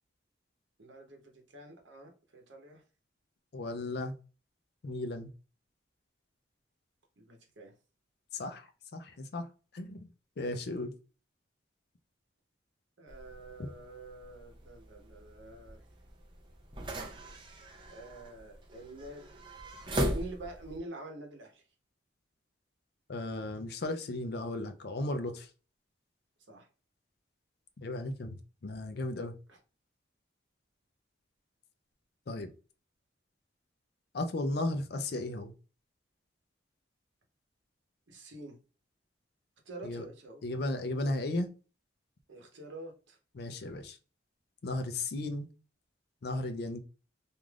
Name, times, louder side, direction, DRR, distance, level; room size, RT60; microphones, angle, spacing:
voice 1, 0.8-2.8 7.2-7.7 13.0-15.8 17.9-19.3 20.0-21.6 26.5-26.7 29.5-29.6 38.1-38.6 39.6-40.5 42.3-43.2, right 2 dB, 80° right, 0.8 m, -47 dB
voice 2, 3.5-4.1 4.8-5.3 8.3-9.5 9.7-10.1 10.4-10.9 23.1-25.5 27.8-29.3 32.3-32.5 34.1-35.5 39.8-40.1 40.4-41.5 43.3-44.0 44.6-45.5 46.2-46.8, left 2 dB, 55° left, 0.4 m, -35 dB
sound 1, 13.1-20.8, equal, 25° right, 0.5 m, -39 dB
2.5 x 2.3 x 3.2 m
head